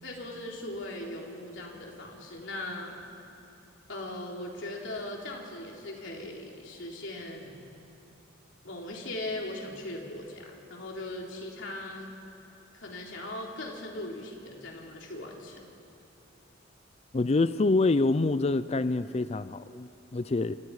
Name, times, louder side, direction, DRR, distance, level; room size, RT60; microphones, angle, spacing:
voice 1, 0.0-3.0 3.9-7.6 8.6-12.1 12.7-15.6, left 1 dB, 70° left, -1 dB, 3.6 m, -39 dB
voice 2, 17.1-20.5, left 3 dB, 35° left, 14 dB, 0.5 m, -26 dB
28.0 x 27.0 x 4.9 m, 2.7 s
head